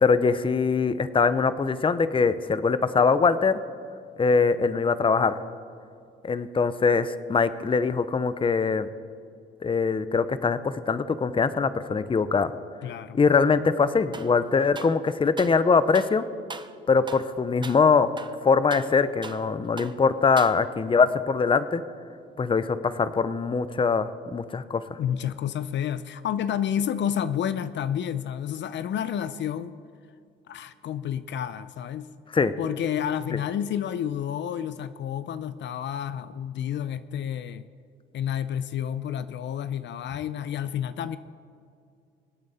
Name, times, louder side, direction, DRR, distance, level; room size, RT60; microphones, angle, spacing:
voice 1, 0.0-3.6 4.2-5.3 6.2-8.9 9.6-12.5 13.1-16.2 16.9-18.1 18.4-21.8 22.4-25.0 32.3-32.5, left 5 dB, 25° left, 13 dB, 0.7 m, -22 dB
voice 2, 12.8-13.2 25.0-29.8 30.5-32.1 32.6-37.7 38.1-41.2, left 9 dB, 65° left, 13 dB, 0.6 m, -30 dB
sound 1, 14.1-14.4 14.8-15.6 15.9-16.2 16.5-16.8 17.1-17.3 17.6-17.9 18.2-19.5 19.8-20.0 20.4-20.9, right 4 dB, 25° right, 0.7 m, -40 dB
25.0 x 8.7 x 4.2 m, 2.4 s
cardioid pair, 90°, 20 cm